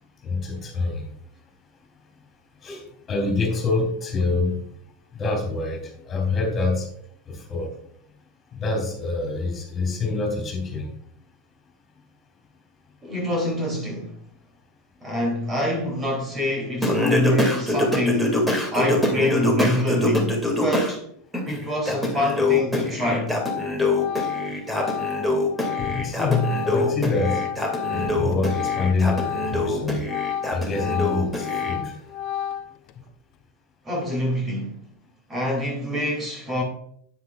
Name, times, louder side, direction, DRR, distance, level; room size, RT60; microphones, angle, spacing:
voice 1, 0.2-1.1 2.6-2.8 3.1-4.6 5.1-6.9 7.3-7.7 8.5-10.9 25.8-27.4 27.9-30.0 30.5-31.9, left 3 dB, 30° left, 3.4 m, -26 dB
voice 2, 13.0-14.2 15.0-21.0 21.4-23.3 33.8-34.8 35.3-36.6, left 1 dB, 20° right, 3.0 m, -26 dB
Singing, 16.8-20.9 21.3-31.7, left 1 dB, 5° right, 2.4 m, -25 dB
Organ, 22.8-23.1 23.4-29.7 30.0-32.9, left 9 dB, 50° left, 0.7 m, -31 dB
9.5 x 8.8 x 2.4 m
hypercardioid pair, 95°, 0 cm